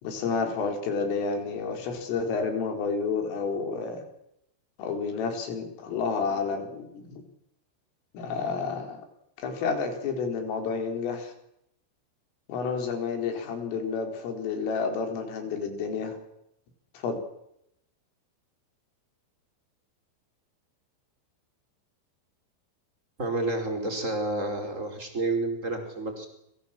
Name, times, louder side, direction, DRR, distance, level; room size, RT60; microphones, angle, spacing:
voice 1, 0.0-4.0 4.8-7.2 8.1-9.0 9.4-11.3 12.5-16.2 16.9-17.2, left 5 dB, 85° left, 6 dB, 6.8 m, -30 dB
voice 2, 23.2-26.3, right 2 dB, 15° right, 5 dB, 4.6 m, -30 dB
27.5 x 24.0 x 7.6 m, 0.78 s
omnidirectional pair, 5.6 m